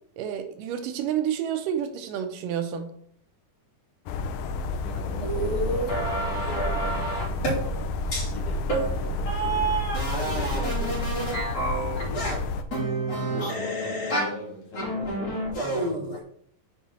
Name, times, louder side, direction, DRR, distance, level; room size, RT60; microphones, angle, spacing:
voice 1, 0.2-2.9, right 9 dB, 80° right, 7 dB, 2.2 m, -29 dB
sound 1, 4.1-12.6, left 2 dB, 80° left, 2.1 m, -30 dB
voice 2, 4.7-7.9 8.2-9.8 10.2-11.4 11.9-12.5 13.2-16.1, left 1 dB, 50° left, -2 dB, 2.3 m, -40 dB
sound 2, 5.2-7.6 8.1-8.3 8.7-8.9 9.3-12.4 12.7-14.4 14.7-16.2, right 2 dB, 30° left, 3.5 m, -29 dB
7.3 x 4.7 x 4.1 m, 0.64 s
omnidirectional pair, 3.9 m